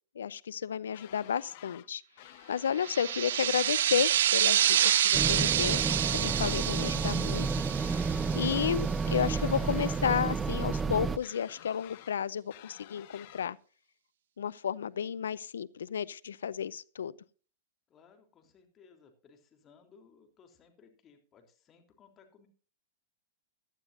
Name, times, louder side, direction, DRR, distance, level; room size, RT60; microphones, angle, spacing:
voice 1, 0.2-2.0 2.5-5.8 6.1-7.5 8.3-13.6 14.4-17.1, left 8 dB, 75° left, 0.6 m, -32 dB
sound 1, 0.9-1.9 2.2-3.2 4.4-5.3 5.6-6.6 7.8-8.7 9.0-10.0 11.2-12.2 12.5-13.5, left 16 dB, 55° left, 1.2 m, -52 dB
sound 2, 2.8-9.1, right 11 dB, 70° right, 0.4 m, -28 dB
sound 3, 5.1-11.2, right 4 dB, 15° right, 0.7 m, -31 dB
voice 2, 17.9-22.5, left 5 dB, 30° left, 3.4 m, -61 dB
16.5 x 12.0 x 2.6 m
hypercardioid pair, 110°, 0 cm